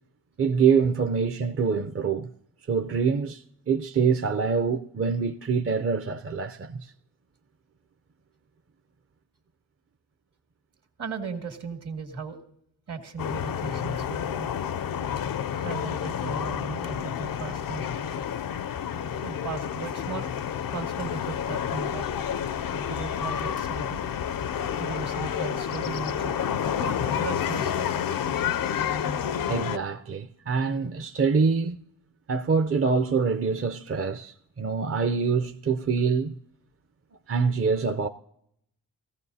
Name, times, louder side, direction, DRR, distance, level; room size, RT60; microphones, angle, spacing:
voice 1, 0.4-2.3 2.7-6.9 29.5-31.8 32.3-36.4 37.3-38.1, right 5 dB, 30° right, 0.6 m, -25 dB
voice 2, 11.0-12.4 12.9-14.5 15.6-17.9 19.2-20.3 20.7-22.0 22.7-24.1 24.6-27.9, right 5 dB, 65° right, 2.0 m, -37 dB
sound 1, 13.2-29.8, left 8 dB, 50° left, 0.5 m, -29 dB
18.0 x 14.5 x 2.8 m
cardioid pair, 50°, 43 cm